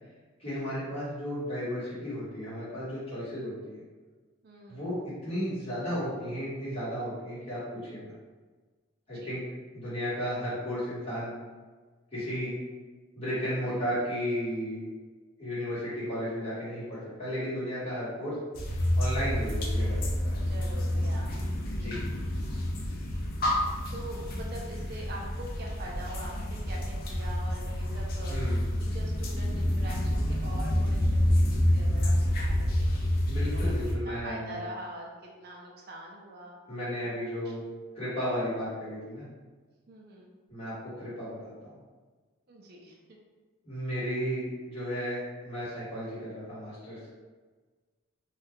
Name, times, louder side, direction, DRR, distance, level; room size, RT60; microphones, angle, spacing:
voice 1, 0.4-3.8 4.7-7.6 7.9-8.1 9.1-9.4 9.7-11.3 12.1-12.5 13.1-14.8 15.4-18.4 19.0-20.0 20.2-20.4 21.7-22.0 28.3-28.6 33.3-34.6 36.7-37.6 37.9-39.3 40.5-41.7 43.6-47.0, equal, 30° left, -11 dB, 1.4 m, -34 dB
voice 2, 4.4-5.0 9.1-9.4 13.6-13.9 20.4-21.5 21.8-22.0 23.9-32.5 32.8-33.3 33.5-33.8 34.0-35.1 35.4-36.6 36.9-37.1 39.9-40.3 42.5-43.0, equal, 45° right, -1 dB, 0.4 m, -44 dB
sound 1, 18.5-34.0, left 1 dB, 45° left, 0.4 m, -28 dB
2.6 x 2.3 x 3.5 m, 1.4 s
head